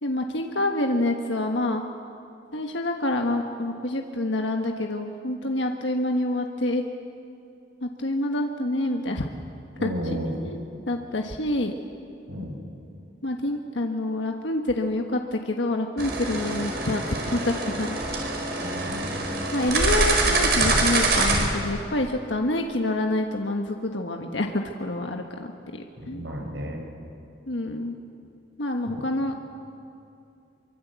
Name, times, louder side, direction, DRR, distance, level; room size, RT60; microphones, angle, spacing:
voice 1, 0.0-1.8 2.5-6.8 7.8-9.3 9.8-11.7 13.2-18.0 19.5-26.3 27.5-27.9 28.6-29.4, left 1 dB, 80° left, 3 dB, 1.4 m, -27 dB
voice 2, 9.8-10.3 12.3-12.5 18.6-19.5 26.0-26.8 28.9-29.0, equal, 75° right, 2 dB, 5.2 m, -33 dB
sound 1, 16.0-21.4, right 2 dB, 55° right, 4.8 m, -24 dB
24.5 x 23.5 x 8.3 m, 2.6 s
head